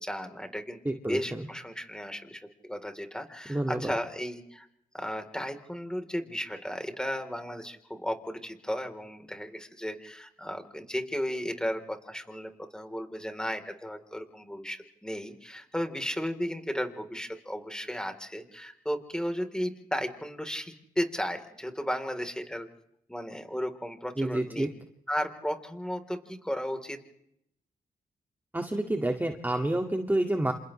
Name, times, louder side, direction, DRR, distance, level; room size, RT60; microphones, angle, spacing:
voice 1, 0.0-0.8 1.1-4.7 4.9-22.7 23.1-24.7 25.1-27.0, equal, 5° left, 6 dB, 3.7 m, -34 dB
voice 2, 0.9-1.5 3.5-3.9 24.2-24.7 28.5-30.5, right 1 dB, 10° right, 3 dB, 2.1 m, -29 dB
29.0 x 27.5 x 3.3 m, 0.76 s
cardioid pair, 60°, 15 cm